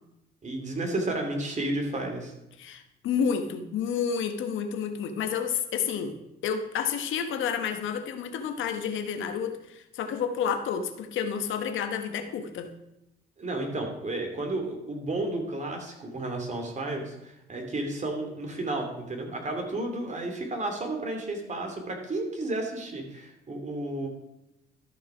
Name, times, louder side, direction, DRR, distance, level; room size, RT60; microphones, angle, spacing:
voice 1, 0.4-2.3 13.4-24.1, right 2 dB, 35° right, 3 dB, 2.9 m, -32 dB
voice 2, 2.6-6.2 6.4-12.7, left 7 dB, 80° left, 7 dB, 1.2 m, -30 dB
13.0 x 6.1 x 5.0 m, 0.88 s
cardioid pair, 90°, 20 cm